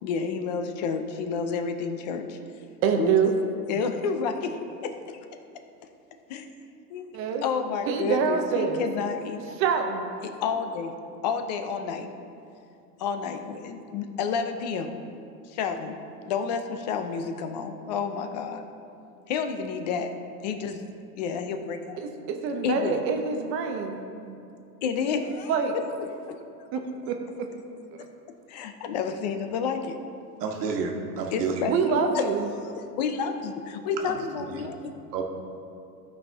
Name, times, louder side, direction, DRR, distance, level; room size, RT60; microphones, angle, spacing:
voice 1, 0.0-2.4 2.9-3.1 3.7-4.6 6.3-6.5 6.9-9.4 10.4-10.9 11.2-12.1 13.0-14.9 15.5-16.0 16.3-18.6 19.3-20.1 20.4-20.8 21.2-22.0 22.6-23.0 24.8-25.5 26.3-26.4 28.5-30.0 31.3-32.2 32.5-34.9, left 6 dB, 30° left, 7 dB, 0.3 m, -30 dB
voice 2, 2.8-3.3 7.1-7.4 7.9-8.9 9.6-10.0 22.0-24.4 25.5-25.7 26.7-27.1 31.6-32.5, right 6 dB, 25° right, 4 dB, 0.6 m, -26 dB
voice 3, 30.4-31.6 34.6-34.7 35.1-35.2, right 5 dB, 70° right, 2 dB, 1.4 m, -29 dB
14.0 x 5.5 x 3.4 m, 2.6 s
hypercardioid pair, 135°, 50 cm